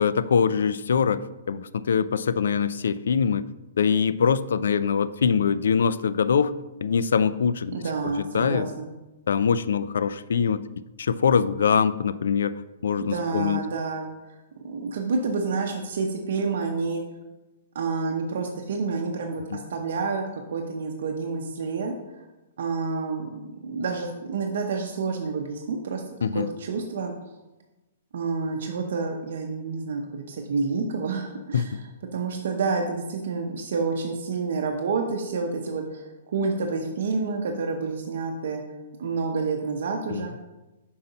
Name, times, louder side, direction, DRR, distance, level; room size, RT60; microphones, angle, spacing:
voice 1, 0.0-3.5 3.8-6.5 6.8-7.8 8.0-8.7 9.3-10.6 11.0-13.6 19.5-19.6 26.2-26.5 31.5-31.7 40.1-40.3, left 6 dB, 85° left, 15 dB, 0.3 m, -23 dB
voice 2, 7.7-8.9 13.0-14.3 14.6-17.0 17.7-22.2 22.6-23.3 23.6-26.0 26.3-27.1 28.1-38.6 39.0-40.4, right 4 dB, 70° right, 3 dB, 0.7 m, -29 dB
5.5 x 5.3 x 4.0 m, 1.0 s
hypercardioid pair, 155°, 0 cm